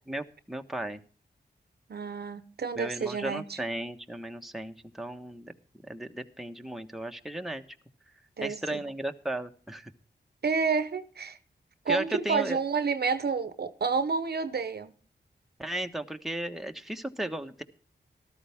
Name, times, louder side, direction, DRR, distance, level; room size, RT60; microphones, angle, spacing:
voice 1, 0.1-1.0 2.7-5.5 5.8-7.6 8.4-9.9 11.9-12.6 15.6-17.6, right 1 dB, ahead, 1.3 m, -35 dB
voice 2, 1.9-3.6 8.4-8.8 10.4-11.4 11.8-14.9, right 5 dB, 65° right, 1.0 m, -29 dB
14.0 x 12.5 x 3.5 m
cardioid pair, 60°, 18 cm